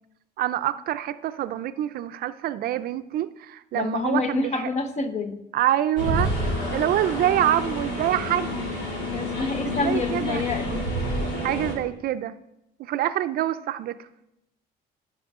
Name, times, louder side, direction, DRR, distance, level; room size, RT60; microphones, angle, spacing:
voice 1, 0.4-4.7 5.5-6.3 6.7-8.7 9.6-10.4 11.4-12.4 12.8-14.1, right 12 dB, 65° right, 12 dB, 0.5 m, -26 dB
voice 2, 3.7-5.4 9.1-10.8, left 3 dB, 40° left, 9 dB, 0.9 m, -28 dB
sound 1, 6.0-11.7, left 1 dB, 85° left, 2.8 m, -28 dB
14.5 x 5.5 x 3.6 m, 0.86 s
cardioid pair, 110°, 17 cm